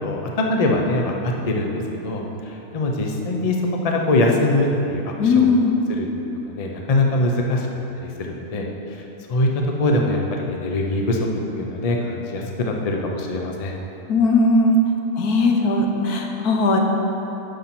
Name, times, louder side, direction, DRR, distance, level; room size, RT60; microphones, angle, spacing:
voice 1, 0.0-3.6 3.8-5.5 5.9-6.1 6.5-7.7 8.0-8.7 9.3-9.5 9.8-11.2 11.6-13.7, left 2 dB, 45° left, 1 dB, 0.5 m, -22 dB
voice 2, 5.2-5.8 14.1-14.8 15.2-16.8, left 3 dB, 70° left, 2 dB, 1.3 m, -18 dB
10.5 x 4.3 x 5.9 m, 2.9 s
omnidirectional pair, 1.7 m